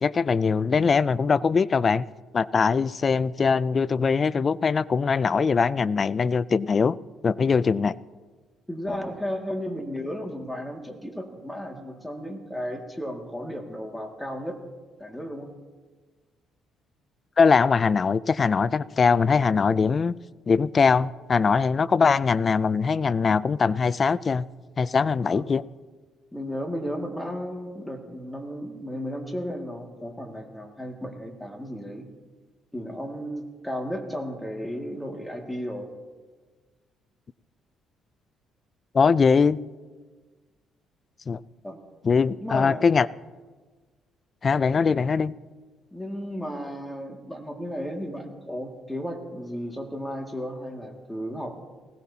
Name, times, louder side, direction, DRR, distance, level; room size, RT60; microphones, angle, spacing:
voice 1, 0.0-2.0 2.3-7.0 7.2-8.0 17.4-20.1 20.5-24.5 24.8-25.6 38.9-39.6 41.3-41.4 42.0-43.1 44.4-45.3, left 5 dB, 40° left, 19 dB, 0.4 m, -22 dB
voice 2, 8.7-14.6 15.0-15.5 25.2-25.5 26.3-32.1 32.7-35.9 41.6-41.8 42.4-42.8 45.9-51.6, equal, 5° left, 2 dB, 2.1 m, -34 dB
20.0 x 17.0 x 2.8 m, 1.4 s
cardioid pair, 85°, 0 cm